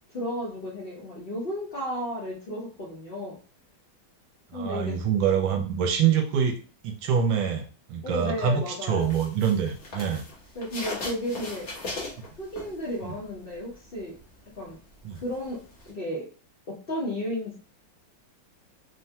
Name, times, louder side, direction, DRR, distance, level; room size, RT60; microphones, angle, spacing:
voice 1, 0.1-3.4 4.5-5.0 8.0-9.1 10.5-11.7 12.4-14.1 14.5-14.8 15.1-16.3 16.7-17.6, left 1 dB, 65° left, -5 dB, 0.5 m, -33 dB
voice 2, 4.5-6.6 6.8-10.2 13.0-13.1 15.0-15.2, right 7 dB, 80° right, 3 dB, 1.3 m, -25 dB
sound 1, 9.0-13.2 13.5-15.9, left 2 dB, 45° left, 1.0 m, -38 dB
3.4 x 2.2 x 2.7 m, 0.38 s
omnidirectional pair, 2.1 m